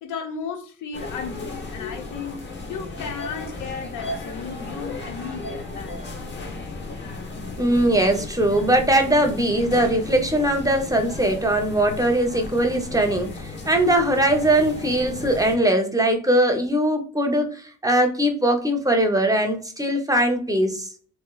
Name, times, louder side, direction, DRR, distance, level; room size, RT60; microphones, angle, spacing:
voice 1, 0.0-2.4 2.7-6.1, left 6 dB, 80° left, 0.8 m, -34 dB
sound 1, 0.9-15.6, left 3 dB, 35° left, 0.9 m, -35 dB
voice 2, 7.6-20.9, right 1 dB, 10° right, 0.6 m, -21 dB
3.0 x 2.9 x 2.3 m
cardioid pair, 90°, 30 cm